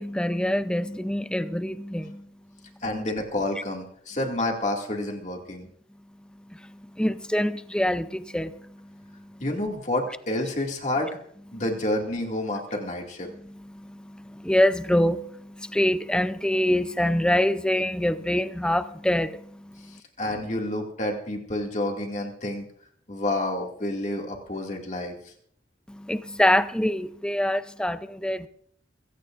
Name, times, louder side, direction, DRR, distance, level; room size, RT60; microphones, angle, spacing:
voice 1, 0.0-2.3 6.5-9.4 11.5-11.6 13.3-20.0 25.9-28.5, left 1 dB, 5° left, 0.5 m, -26 dB
voice 2, 2.8-5.7 9.4-11.2 11.5-13.3 19.8-22.7 23.1-25.3, left 1 dB, 40° left, 2.3 m, -29 dB
23.0 x 16.0 x 2.6 m
head